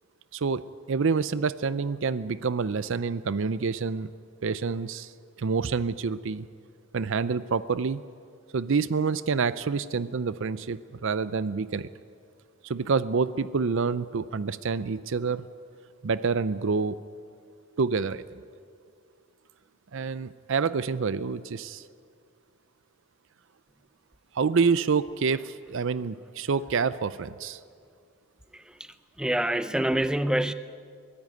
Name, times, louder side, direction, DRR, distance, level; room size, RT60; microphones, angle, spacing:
voice 1, 0.3-4.1 4.4-5.1 5.4-6.5 6.9-8.0 8.5-11.9 12.6-15.4 16.0-17.0 17.8-18.2 19.9-21.8 24.3-27.6, right 5 dB, 60° right, 16 dB, 0.5 m, -27 dB
voice 2, 28.5-30.5, right 1 dB, 5° right, 11 dB, 0.6 m, -27 dB
23.0 x 16.0 x 9.3 m, 2.2 s
head